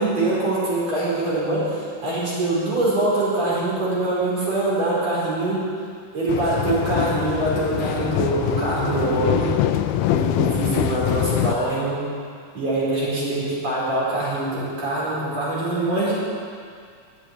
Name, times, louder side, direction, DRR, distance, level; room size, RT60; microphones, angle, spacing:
voice 1, 0.0-5.7 6.1-9.7 10.1-12.0 12.5-16.1, right 2 dB, 50° right, -7 dB, 5.7 m, -23 dB
sound 1, 6.3-11.6, left 12 dB, 80° left, 2.0 m, -24 dB
12.0 x 9.9 x 9.5 m, 2.2 s
omnidirectional pair, 3.8 m